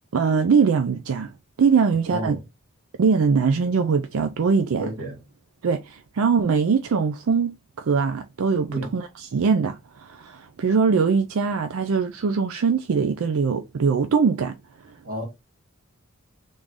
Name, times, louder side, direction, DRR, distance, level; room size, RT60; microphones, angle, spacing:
voice 1, 0.1-1.3 1.6-2.4 3.0-4.9 5.6-14.6 14.8-14.9, right 5 dB, 70° right, 0.4 m, -22 dB
voice 2, 2.1-2.4 4.8-5.2 8.7-8.9 15.0-15.2, right 1 dB, 40° right, 1.8 m, -30 dB
3.7 x 2.6 x 4.6 m
head